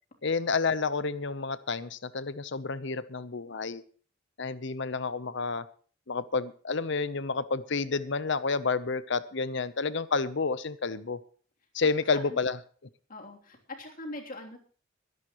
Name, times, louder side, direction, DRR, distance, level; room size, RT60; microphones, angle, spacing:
voice 1, 0.2-3.8 4.4-5.7 6.1-11.2 11.7-12.6, left 4 dB, 65° left, 15 dB, 0.8 m, -30 dB
voice 2, 13.1-14.6, left 2 dB, 45° left, 2 dB, 3.2 m, -42 dB
22.0 x 11.0 x 3.1 m, 0.42 s
head